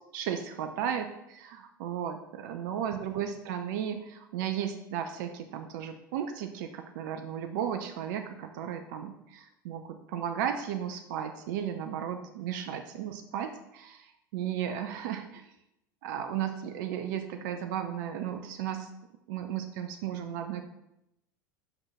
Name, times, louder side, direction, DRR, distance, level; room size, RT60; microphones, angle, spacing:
voice 1, 0.1-15.5 16.0-18.9 19.3-20.7, right 9 dB, 60° right, 7 dB, 0.7 m, -35 dB
5.6 x 5.1 x 6.3 m, 0.85 s
hypercardioid pair, 80°, 11 cm